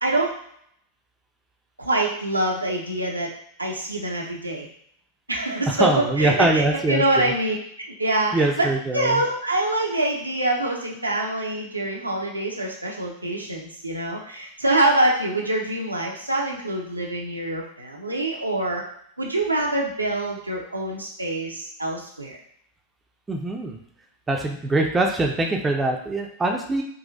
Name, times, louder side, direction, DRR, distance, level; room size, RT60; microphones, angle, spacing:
voice 1, 0.0-0.3 1.8-3.3 3.6-4.7 5.3-7.6 8.0-8.7 8.9-18.8 19.2-22.4, right 1 dB, 85° right, -1 dB, 0.6 m, -25 dB
voice 2, 5.7-7.3 8.3-9.2 23.3-23.8 24.3-26.8, right 2 dB, 15° right, 2 dB, 0.5 m, -23 dB
3.9 x 2.4 x 2.5 m, 0.68 s
figure-of-eight pair, 90°, 0 cm